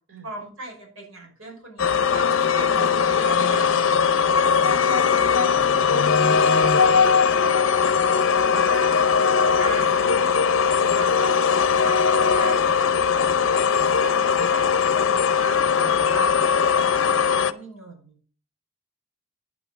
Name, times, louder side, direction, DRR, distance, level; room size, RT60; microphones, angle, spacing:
voice 1, 0.2-5.3 6.4-7.7 8.2-9.1 9.6-11.4 11.8-13.5 14.0-18.2, right 2 dB, 80° right, -1 dB, 5.6 m, -39 dB
sound 1, 1.8-17.5, left 6 dB, 65° left, 0.6 m, -20 dB
voice 2, 4.1-5.5 9.5-9.7 10.8-11.1, equal, 60° right, 1 dB, 5.1 m, -46 dB
10.5 x 5.7 x 7.2 m, 0.43 s
head